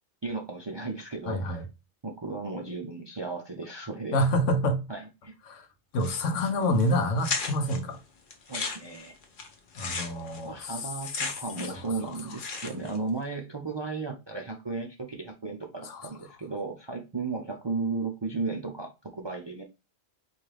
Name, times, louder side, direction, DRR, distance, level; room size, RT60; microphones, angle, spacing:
voice 1, 0.2-1.6 2.0-4.2 4.9-5.3 8.5-9.2 10.4-19.6, right 3 dB, 45° right, 0.3 m, -35 dB
voice 2, 1.3-1.6 4.1-4.8 5.5-5.6 5.9-8.0 9.8-10.7 11.7-12.1 15.8-16.1, left 1 dB, 85° left, 1.1 m, -27 dB
sound 1, 6.0-6.5 6.8-6.9 7.2-7.8 8.3-11.9 12.1-13.0, left 4 dB, 50° left, 0.8 m, -35 dB
4.3 x 2.4 x 3.2 m
omnidirectional pair, 1.3 m